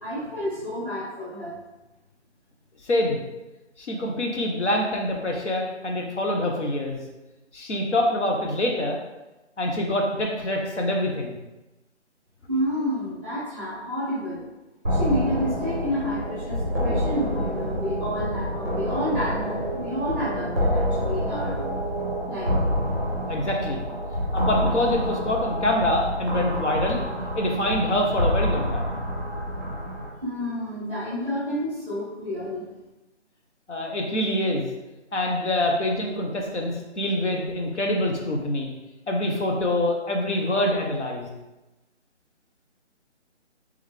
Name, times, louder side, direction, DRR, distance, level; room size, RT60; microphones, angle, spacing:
voice 1, 0.0-1.6 12.5-14.4 14.9-21.7 22.3-22.6 30.2-32.6, equal, 10° left, -11 dB, 1.0 m, -30 dB
voice 2, 2.8-3.2 3.8-7.0 7.5-9.0 9.6-11.3 23.3-23.8 24.3-27.0 27.3-29.0 33.7-34.7 35.1-38.7 39.1-41.3, left 1 dB, 70° left, 0 dB, 0.9 m, -25 dB
sound 1, 14.8-30.1, equal, 15° right, 0.6 m, -27 dB
3.5 x 3.4 x 3.3 m, 1.0 s
figure-of-eight pair, 165°, 36 cm